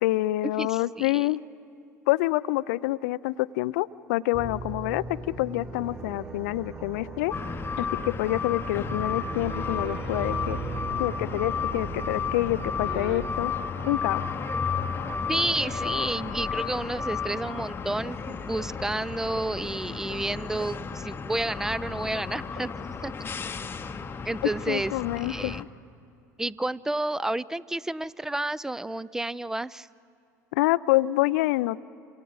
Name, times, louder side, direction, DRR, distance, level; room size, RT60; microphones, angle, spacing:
voice 1, 0.0-1.4 2.1-7.3 7.8-10.6 11.0-13.5 13.8-14.3 24.7-25.7 30.5-31.8, left 18 dB, 65° left, 18 dB, 0.4 m, -27 dB
voice 2, 0.6-1.3 15.3-22.7 23.0-23.1 24.2-24.9 25.2-25.6 26.4-29.9, right 2 dB, 5° right, 21 dB, 0.4 m, -30 dB
sound 1, 4.3-13.2, right 4 dB, 25° right, 3.2 m, -38 dB
sound 2, 6.6-7.6 8.8-11.7 13.3-16.1 16.4-16.5 17.5-17.6 18.1-21.0 21.8-23.5, right 2 dB, 50° right, 5.4 m, -50 dB
sound 3, 7.3-25.6, left 6 dB, 25° left, 0.9 m, -33 dB
28.0 x 26.5 x 4.0 m, 2.5 s
figure-of-eight pair, 70°, 9 cm